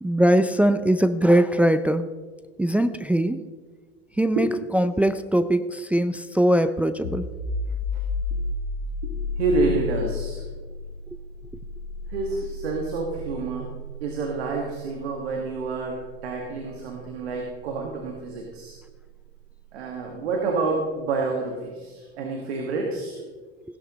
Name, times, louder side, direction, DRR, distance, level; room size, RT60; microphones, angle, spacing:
voice 1, 0.0-2.1 2.6-3.4 4.2-4.5 4.7-7.3, right 1 dB, 5° right, 10 dB, 0.4 m, -21 dB
sound 1, 7.0-18.5, left 3 dB, 80° left, 2.8 m, -33 dB
voice 2, 9.0-10.4 12.1-13.7 14.0-18.8 19.7-23.2, right 3 dB, 80° right, 1 dB, 1.9 m, -28 dB
16.0 x 11.5 x 3.1 m, 1.4 s
hypercardioid pair, 90°, 31 cm